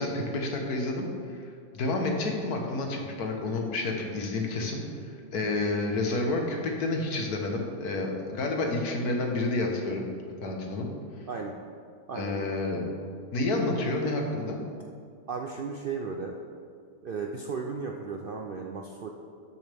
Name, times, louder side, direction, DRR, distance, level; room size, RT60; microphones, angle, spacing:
voice 1, 0.0-1.4 1.7-4.8 5.3-10.1 10.4-10.9 12.1-12.8 13.3-14.6, left 2 dB, 85° left, 1 dB, 1.7 m, -29 dB
voice 2, 12.1-12.6 15.3-16.3 17.0-19.1, right 5 dB, 65° right, 2 dB, 0.5 m, -35 dB
12.5 x 7.1 x 3.5 m, 2.3 s
omnidirectional pair, 1.6 m